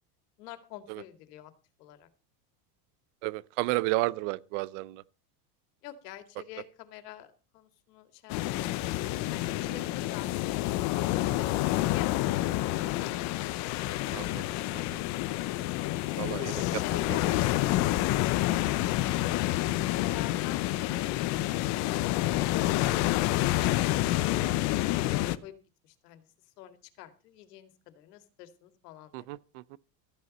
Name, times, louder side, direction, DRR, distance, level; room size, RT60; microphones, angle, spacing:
voice 1, 0.4-1.5 1.8-2.1 5.8-8.8 9.3-11.6 11.9-12.8 16.3-17.4 17.7-19.5 19.9-22.0 22.5-25.5 25.8-26.3 26.6-29.3, left 13 dB, 90° left, 2.4 m, -46 dB
voice 2, 3.2-5.0 14.1-14.4 14.7-14.8 16.2-16.5 17.1-17.2 29.1-29.6, right 20 dB, 50° right, 0.7 m, -32 dB
sound 1, 8.3-25.4, left 16 dB, 40° left, 0.7 m, -28 dB
14.0 x 9.6 x 5.3 m
cardioid pair, 170°, 46 cm